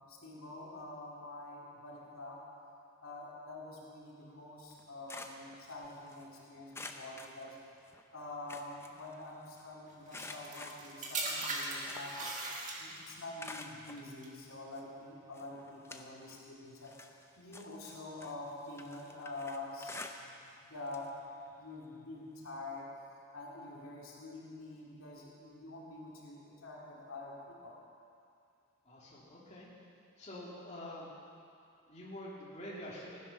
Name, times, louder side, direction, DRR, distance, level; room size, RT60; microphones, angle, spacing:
voice 1, 0.1-2.4 3.0-7.6 8.1-12.2 12.8-17.1 17.4-19.9 20.2-20.4 20.7-21.2 21.6-22.9 23.3-27.8, left 2 dB, 90° left, -4 dB, 2.7 m, -46 dB
Digging with shovel, 4.7-6.3 6.7-8.0 8.3-9.6 10.1-12.6 12.9-14.0 14.7-14.8 15.3-16.5 16.8-20.6 20.9-21.1 21.5-21.6 22.8-22.9, left 2 dB, 10° left, 0.5 m, -49 dB
sound 1, 10.1-13.2 14.0-14.3, right 2 dB, 35° right, 1.7 m, -39 dB
voice 2, 28.8-29.7 30.2-31.1 31.8-33.2, left 1 dB, 35° left, -6 dB, 2.6 m, -46 dB
15.5 x 10.0 x 5.9 m, 2.4 s
head